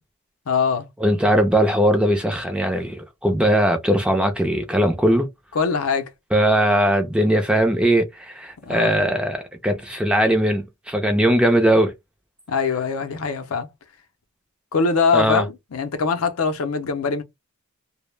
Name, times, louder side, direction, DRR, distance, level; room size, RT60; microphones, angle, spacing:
voice 1, 0.5-0.9 5.5-6.1 8.7-9.1 12.5-13.7 14.7-17.2, left 5 dB, 75° left, 0.5 m, -22 dB
voice 2, 1.0-5.3 6.3-11.9 15.1-15.4, right 1 dB, 5° right, 0.4 m, -19 dB
2.1 x 2.0 x 3.2 m
head